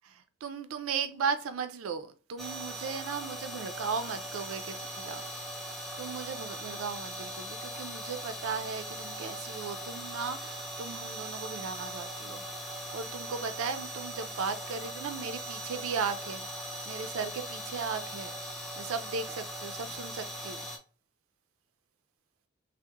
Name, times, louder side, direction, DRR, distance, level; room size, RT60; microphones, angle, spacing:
voice 1, 0.0-5.7 6.0-16.5 16.8-20.6, right 5 dB, 85° right, 0.4 m, -37 dB
sound 1, 2.4-20.8, right 1 dB, ahead, 0.4 m, -40 dB
3.4 x 2.0 x 2.9 m
head